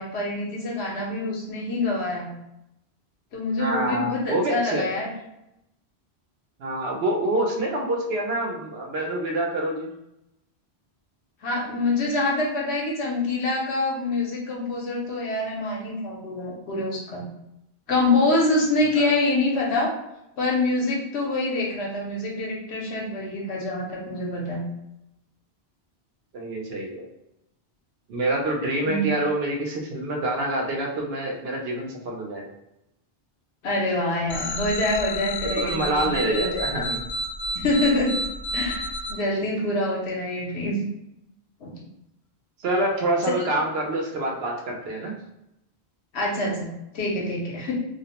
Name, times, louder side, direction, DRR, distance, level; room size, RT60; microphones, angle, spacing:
voice 1, 0.0-2.3 3.3-5.1 11.4-17.3 17.9-19.9 20.4-24.6 28.9-29.1 33.6-36.0 36.3-36.6 37.5-38.2 38.5-40.8 41.6-41.8 46.1-47.8, left 2 dB, 80° left, -2 dB, 0.9 m, -25 dB
voice 2, 3.6-4.9 6.6-9.9 19.0-19.1 26.3-27.1 28.1-32.5 35.4-37.0 42.6-45.1, right 1 dB, 70° right, 0 dB, 0.8 m, -26 dB
sound 1, 34.3-39.1, left 1 dB, 55° left, 0.5 m, -30 dB
2.4 x 2.0 x 2.8 m, 0.84 s
omnidirectional pair, 1.1 m